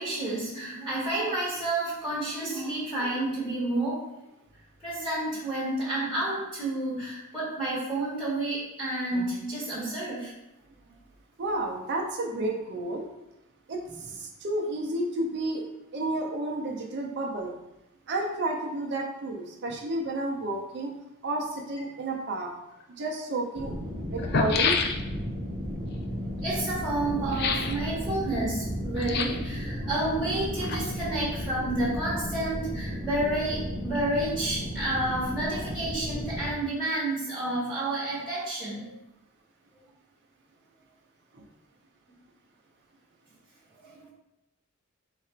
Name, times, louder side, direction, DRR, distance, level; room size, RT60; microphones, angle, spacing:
voice 1, 0.0-4.0 4.8-10.3 10.8-10.9 13.9-14.0 26.4-38.9 43.8-44.1, right 2 dB, ahead, -7 dB, 1.1 m, -30 dB
voice 2, 11.4-13.0 13.7-15.6 15.9-17.5 18.1-20.9 21.2-22.5 23.0-23.7 24.1-24.8 41.3-41.5, right 2 dB, 50° right, 0 dB, 0.5 m, -31 dB
sound 1, 22.8-22.9 23.8-23.9 24.1-25.3 27.3-27.8 29.0-29.5 30.3-31.1 31.4-31.5, left 5 dB, 50° left, 0.3 m, -28 dB
sound 2, 23.6-36.6, equal, 20° right, 0.8 m, -34 dB
4.1 x 2.4 x 4.3 m, 0.93 s
head